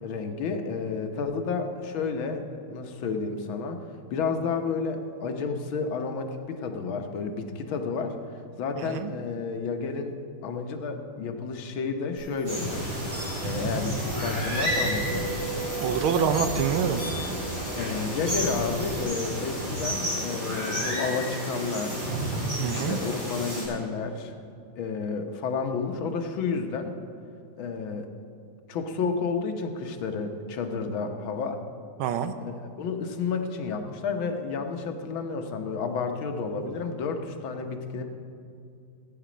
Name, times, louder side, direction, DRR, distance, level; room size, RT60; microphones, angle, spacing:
voice 1, 0.0-3.8 4.1-8.2 8.6-10.1 10.4-13.0 13.4-15.3 17.7-22.1 22.7-24.4 24.8-26.9 27.6-28.1 28.7-31.6 32.4-38.0, left 5 dB, 75° left, 5 dB, 1.8 m, -31 dB
sound 1, 12.2-19.0, right 2 dB, 30° right, 3.4 m, -35 dB
sound 2, 12.4-23.6, equal, 50° right, 4.8 m, -31 dB
voice 2, 15.8-17.0 22.6-23.0 32.0-32.3, right 8 dB, 90° right, 9 dB, 1.6 m, -26 dB
16.5 x 9.2 x 5.1 m, 2.4 s
omnidirectional pair, 2.2 m